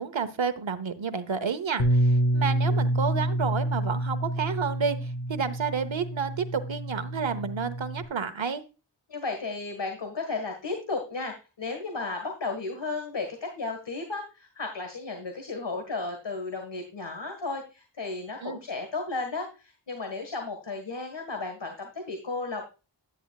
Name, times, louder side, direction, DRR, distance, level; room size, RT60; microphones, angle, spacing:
voice 1, 0.0-8.6 18.4-18.6, right 6 dB, 80° right, 11 dB, 1.0 m, -30 dB
Bass guitar, 1.8-8.0, right 1 dB, 80° left, 1.2 m, -27 dB
voice 2, 9.1-22.6, left 3 dB, 65° left, 4 dB, 1.7 m, -34 dB
10.5 x 10.0 x 2.3 m, 0.32 s
wide cardioid pair, 60°, 46 cm